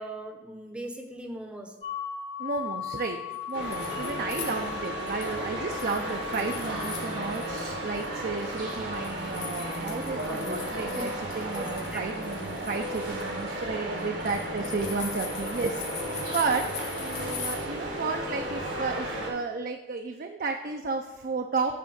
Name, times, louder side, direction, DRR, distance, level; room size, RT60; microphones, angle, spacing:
voice 1, 0.0-1.7 6.0-6.2 11.0-11.1 11.6-11.7 11.9-12.0, right 1 dB, 5° right, 3 dB, 0.7 m, -39 dB
sound 1, 1.8-13.6, left 9 dB, 30° left, 0.5 m, -41 dB
voice 2, 2.4-11.1 11.4-16.7 17.0-21.8, right 4 dB, 55° right, 4 dB, 0.5 m, -32 dB
sound 2, 3.3-5.4 5.7-7.6 7.9-17.5, left 6 dB, 70° left, 1.9 m, -42 dB
sound 3, 3.5-19.3, right 1 dB, 85° right, 1.7 m, -34 dB
8.4 x 3.7 x 6.2 m, 1.0 s
head